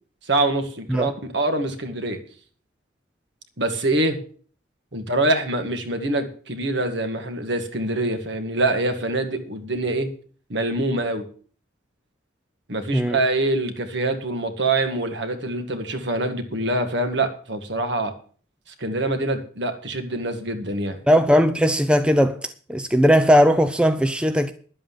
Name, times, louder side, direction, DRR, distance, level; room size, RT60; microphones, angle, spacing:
voice 1, 0.3-2.2 3.6-4.2 4.9-10.1 10.5-11.3 12.7-18.1 18.8-21.0, right 2 dB, 60° right, 1.9 m, -25 dB
voice 2, 21.1-22.4 22.7-24.5, equal, 5° right, 0.6 m, -18 dB
11.5 x 7.7 x 7.3 m
head